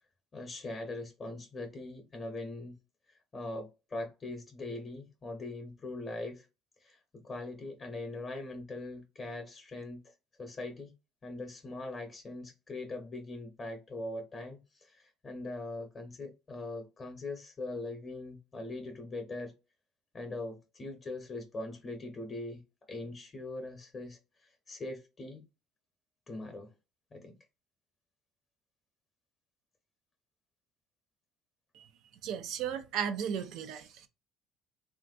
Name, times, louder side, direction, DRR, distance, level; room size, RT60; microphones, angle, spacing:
voice 1, 0.3-2.8 3.3-6.5 6.8-10.1 10.4-10.9 11.2-19.5 20.1-25.5 26.3-26.7 27.1-27.4, left 2 dB, 30° left, 0.7 m, -41 dB
voice 2, 32.2-34.1, right 8 dB, 70° right, 0.4 m, -35 dB
3.3 x 2.5 x 2.4 m
cardioid pair, 115°, 0 cm